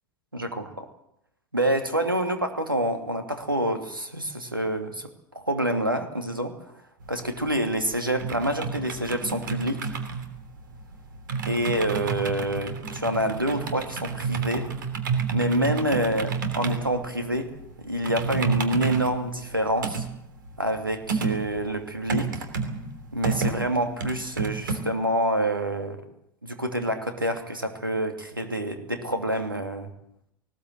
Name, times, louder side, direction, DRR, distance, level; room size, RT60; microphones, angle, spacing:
voice 1, 0.3-0.8 1.5-5.1 5.3-6.5 7.1-9.9 11.5-14.7 15.3-17.5 17.8-20.0 20.6-22.3 23.1-26.0 26.4-29.9, right 1 dB, 85° right, 5 dB, 2.7 m, -27 dB
sound 1, 7.0-24.8, right 5 dB, 65° right, 3.1 m, -31 dB
19.5 x 19.5 x 8.0 m, 0.76 s
figure-of-eight pair, 80°, 11 cm